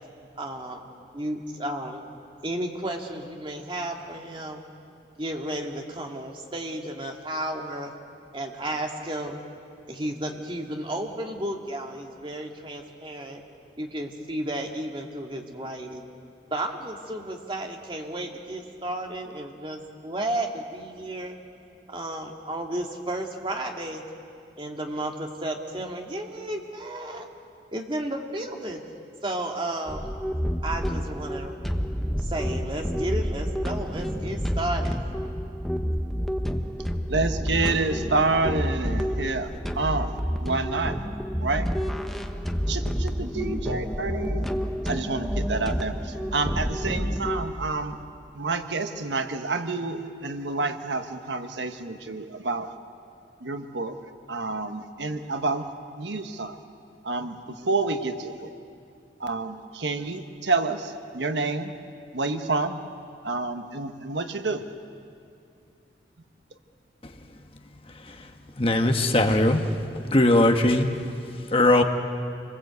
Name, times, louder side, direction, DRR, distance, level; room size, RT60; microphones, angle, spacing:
voice 1, 0.4-0.8 1.1-2.0 2.4-4.6 5.2-7.9 8.3-9.4 9.9-13.4 13.8-16.1 16.5-21.4 21.9-24.0 24.6-27.3 27.7-28.8 29.2-30.0 30.6-31.5 32.2-35.0, right 1 dB, 30° right, 2 dB, 2.1 m, -33 dB
sound 1, 29.9-47.5, equal, ahead, 1.0 m, -29 dB
voice 2, 37.1-40.1 40.4-40.9 41.4-41.7 42.7-44.4 44.8-46.0 46.3-48.0 48.4-52.7 53.4-54.0 54.3-55.6 56.0-56.6 57.0-57.3 57.6-58.5 59.2-61.7 62.1-62.8 63.2-64.6, right 3 dB, 80° right, 8 dB, 1.3 m, -28 dB
voice 3, 68.6-69.6 70.0-70.9 71.5-71.8, left 1 dB, 30° left, 5 dB, 1.3 m, -19 dB
27.0 x 21.0 x 8.2 m, 2.4 s
head